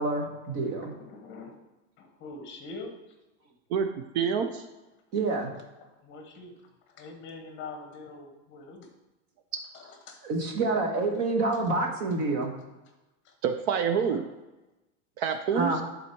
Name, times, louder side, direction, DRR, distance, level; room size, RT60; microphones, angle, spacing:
voice 1, 0.0-0.9 5.1-5.5 10.2-12.5 15.5-15.8, right 3 dB, 40° right, 2 dB, 1.3 m, -27 dB
voice 2, 0.5-1.6 2.0-2.9 5.8-6.6 6.9-8.9 9.7-10.2 11.5-11.6 13.2-13.3 13.8-14.3, left 3 dB, 30° left, 4 dB, 1.1 m, -44 dB
voice 3, 3.7-4.6 13.4-14.2 15.2-15.7, right 7 dB, 55° right, 7 dB, 0.6 m, -27 dB
10.5 x 4.2 x 4.5 m, 1.0 s
supercardioid pair, 160°, 39 cm